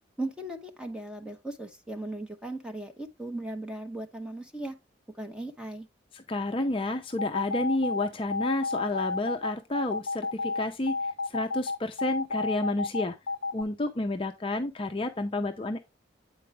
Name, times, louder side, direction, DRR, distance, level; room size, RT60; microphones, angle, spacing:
voice 1, 0.2-4.8 5.2-5.9, right 1 dB, 5° right, 0.9 m, -37 dB
voice 2, 6.1-13.2 13.5-15.8, left 2 dB, 25° left, 0.4 m, -30 dB
sound 1, 7.1-13.6, left 3 dB, 80° left, 0.5 m, -30 dB
8.5 x 4.6 x 3.2 m
head